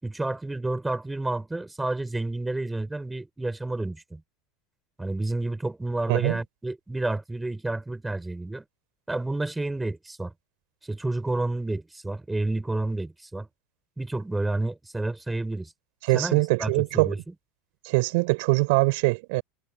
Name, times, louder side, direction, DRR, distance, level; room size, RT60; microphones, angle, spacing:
voice 1, 0.0-4.2 5.0-8.6 9.1-10.3 10.8-13.5 14.0-15.7 16.1-17.3, right 2 dB, 5° right, 6.1 m, -30 dB
voice 2, 16.0-17.1 17.8-19.4, right 26 dB, 65° right, 4.5 m, -23 dB
supercardioid pair, 140°, 0 cm